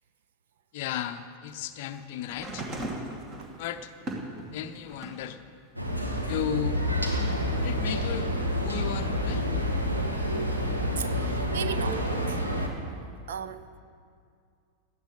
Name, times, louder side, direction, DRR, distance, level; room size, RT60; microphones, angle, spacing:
voice 1, 0.7-2.7 3.6-3.9 4.5-5.4 6.2-6.8 7.6-8.3 8.6-9.5, left 10 dB, 50° left, 0.6 m, -34 dB
sound 1, 2.2-5.3 5.8-6.9 7.9-8.0, right 1 dB, 30° right, 2.6 m, -38 dB
sound 2, 5.8-12.7, equal, 85° right, 1.8 m, -28 dB
voice 2, 10.5-12.4 13.3-13.6, right 8 dB, 60° right, 0.7 m, -37 dB
17.5 x 12.5 x 5.5 m
figure-of-eight pair, 90°, 0 cm